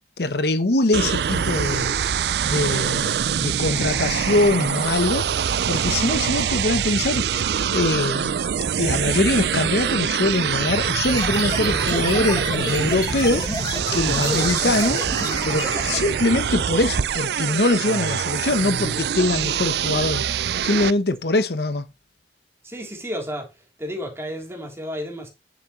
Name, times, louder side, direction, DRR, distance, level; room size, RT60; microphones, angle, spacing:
voice 1, 0.2-1.9 2.4-5.3 5.7-7.4 7.7-8.3 8.8-13.4 13.9-15.0 15.4-20.2 20.6-21.9, left 2 dB, 65° left, 1.0 m, -23 dB
sound 1, 0.9-20.9, right 8 dB, 70° right, 0.4 m, -24 dB
sound 2, 11.0-16.2, left 2 dB, 20° left, 1.4 m, -30 dB
voice 2, 14.1-14.5 22.6-23.5 23.8-25.3, equal, 15° right, 3.4 m, -31 dB
10.5 x 7.3 x 3.1 m
head